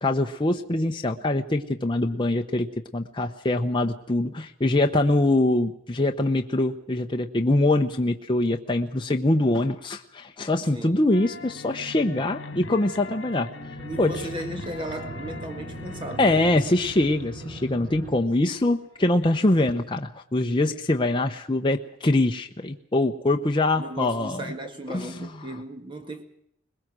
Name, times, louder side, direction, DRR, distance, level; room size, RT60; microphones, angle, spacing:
voice 1, 0.0-2.7 2.9-13.5 14.0-14.1 16.2-24.4 24.9-25.3, left 2 dB, 25° left, 0.9 m, -23 dB
voice 2, 10.7-11.1 13.8-16.6 23.8-26.2, right 1 dB, 25° right, 1.9 m, -36 dB
sound 1, 11.1-20.0, left 3 dB, 70° left, 2.0 m, -42 dB
sound 2, 13.1-18.1, right 1 dB, 60° right, 5.3 m, -40 dB
21.5 x 21.0 x 6.2 m
head